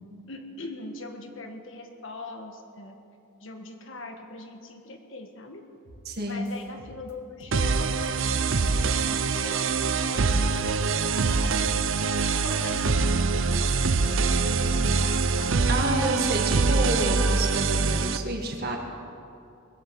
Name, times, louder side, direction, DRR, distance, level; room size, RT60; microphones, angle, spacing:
voice 1, 0.3-2.9 3.4-5.6 6.3-9.2 9.4-11.6 12.3-15.7 16.1-16.2 16.5-16.6, left 2 dB, 60° left, 4 dB, 1.5 m, -41 dB
sound 1, 5.8-8.1 8.3-9.2 9.4-13.1 13.4-14.4 14.7-14.8 15.0-15.6, left 1 dB, 80° left, 1.8 m, -50 dB
voice 2, 6.1-6.5 15.7-18.8, right 1 dB, 45° right, 2 dB, 1.8 m, -29 dB
sound 2, 7.5-18.2, right 4 dB, 65° right, 0.6 m, -24 dB
20.5 x 7.9 x 7.9 m, 2.6 s
head